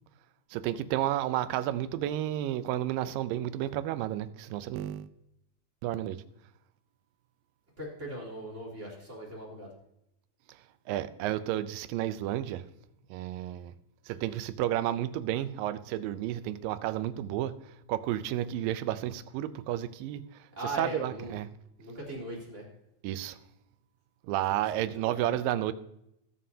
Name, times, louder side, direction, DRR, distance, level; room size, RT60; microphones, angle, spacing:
voice 1, 0.5-5.1 5.8-6.2 10.5-10.6 10.9-12.7 13.1-13.7 14.1-20.5 20.8-21.5 23.0-23.4 24.3-25.7, right 13 dB, 80° right, 2.2 m, -32 dB
voice 2, 7.8-9.7 20.6-21.3 21.8-22.6 24.5-24.9 25.1-25.3, right 1 dB, 20° right, 3.8 m, -39 dB
20.0 x 7.5 x 2.8 m
omnidirectional pair, 4.3 m